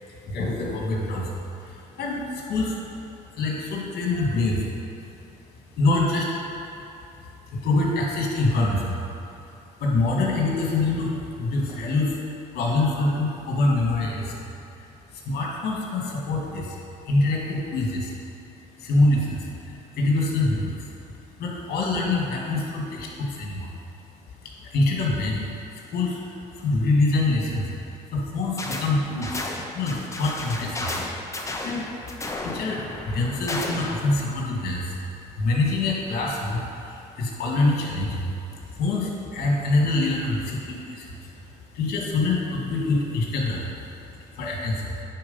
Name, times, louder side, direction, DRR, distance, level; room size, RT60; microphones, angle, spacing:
voice 1, 0.3-2.8 3.4-4.8 5.8-6.4 7.5-9.0 9.8-12.2 12.5-14.5 15.1-16.8 17.0-18.1 18.8-20.9 21.4-23.7 24.4-27.7 28.1-29.4 29.7-31.0 31.4-31.9 32.2-35.0 35.3-38.3 38.6-43.8 44.1-45.0, left 2 dB, 70° left, -2 dB, 2.0 m, -25 dB
sound 1, 28.6-28.9 29.2-34.0, left 2 dB, 15° left, 0.9 m, -33 dB
9.8 x 4.5 x 5.5 m, 2.8 s
cardioid pair, 110°, 17 cm